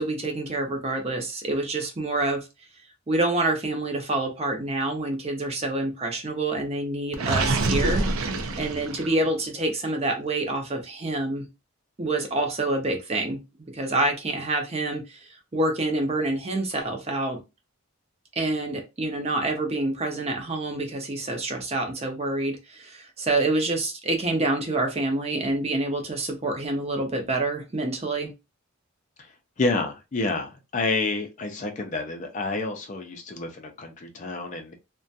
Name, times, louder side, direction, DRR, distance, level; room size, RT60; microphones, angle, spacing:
voice 1, 0.0-2.4 3.1-8.0 8.6-11.5 12.0-13.4 13.7-17.4 18.4-28.3, right 2 dB, 30° right, 3 dB, 0.6 m, -27 dB
Gurgling, 7.1-9.3, right 2 dB, 80° right, 0.5 m, -26 dB
voice 2, 29.2-34.8, left 3 dB, 35° left, 4 dB, 0.4 m, -29 dB
2.4 x 2.2 x 2.6 m, 0.25 s
head